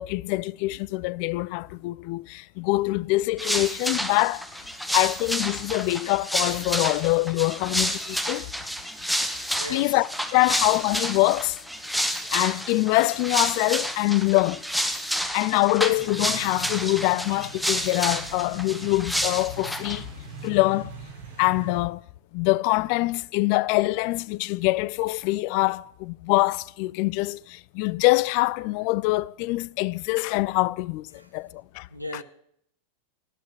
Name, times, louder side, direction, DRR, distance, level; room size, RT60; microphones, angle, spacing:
voice 1, 0.0-4.4 4.9-8.5 9.7-11.6 12.3-14.6 15.3-20.1 20.4-20.9 21.4-22.0 22.3-31.9, left 21 dB, 45° left, 0.4 m, -24 dB
sound 1, 3.4-20.0, equal, ahead, 1.0 m, -30 dB
voice 2, 9.5-10.0 31.1-31.3 31.9-32.2, equal, 90° right, 1.3 m, -37 dB
sound 2, 15.9-21.8, right 3 dB, 60° right, 3.4 m, -42 dB
18.0 x 12.0 x 3.0 m
figure-of-eight pair, 90°, 0 cm